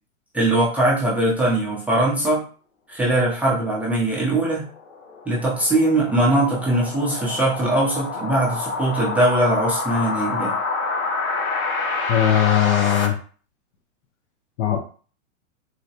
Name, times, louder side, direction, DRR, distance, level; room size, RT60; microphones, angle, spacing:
voice 1, 0.3-2.4 2.9-4.7 5.3-10.5, right 1 dB, 5° right, -6 dB, 0.5 m, -21 dB
sound 1, 4.4-13.1, left 4 dB, 85° left, 1.0 m, -28 dB
voice 2, 12.1-13.2 14.6-14.8, left 11 dB, 60° left, 2 dB, 0.6 m, -19 dB
3.9 x 2.1 x 2.8 m, 0.41 s
hypercardioid pair, 130°, 40 cm